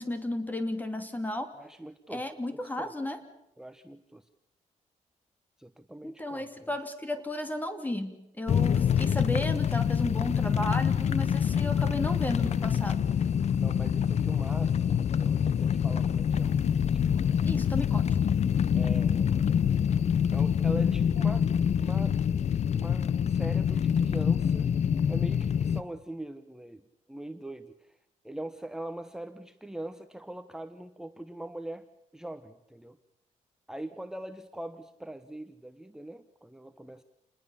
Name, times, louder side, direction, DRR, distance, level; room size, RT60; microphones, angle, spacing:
voice 1, 0.0-1.5 2.1-3.2 6.0-13.1 17.4-18.1, left 1 dB, 10° left, 8 dB, 2.7 m, -34 dB
voice 2, 1.5-2.9 3.6-4.3 5.6-6.7 13.6-17.5 18.7-19.4 20.3-21.5 21.8-22.2 22.7-24.7 25.1-28.0 28.2-31.9 32.1-33.0 33.7-37.0, right 1 dB, 5° right, 8 dB, 1.0 m, -42 dB
sound 1, 8.5-25.8, left 8 dB, 55° left, 0.9 m, -26 dB
28.5 x 20.0 x 7.2 m, 0.84 s
cardioid pair, 115°, 14 cm